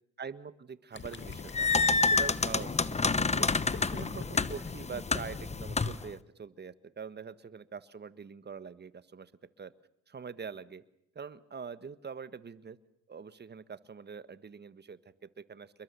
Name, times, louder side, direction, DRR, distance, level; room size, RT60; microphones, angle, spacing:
voice 1, 0.2-1.7 2.0-9.3 9.6-9.7 10.1-10.8 11.1-12.8 13.1-15.8, right 6 dB, 35° right, 15 dB, 1.5 m, -44 dB
Gurgling, 0.9-5.6, left 5 dB, 40° left, 2.2 m, -45 dB
sound 1, 1.1-6.1, left 4 dB, 20° left, 1.1 m, -29 dB
29.0 x 22.0 x 7.0 m, 0.76 s
cardioid pair, 90°, 30 cm